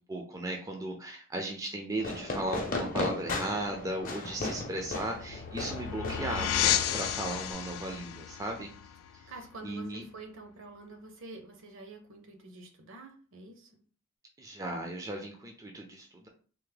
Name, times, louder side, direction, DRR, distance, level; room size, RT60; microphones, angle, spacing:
voice 1, 0.1-8.7 9.1-9.3 9.6-10.0 14.4-16.3, right 1 dB, 15° right, 2 dB, 0.4 m, -36 dB
Fireworks, 2.0-7.5, left 2 dB, 40° left, 0.6 m, -36 dB
sound 1, 4.8-10.0, left 11 dB, 80° left, 0.3 m, -33 dB
voice 2, 9.3-13.8, right 2 dB, 60° right, 4 dB, 0.7 m, -48 dB
3.3 x 2.0 x 3.3 m, 0.41 s
head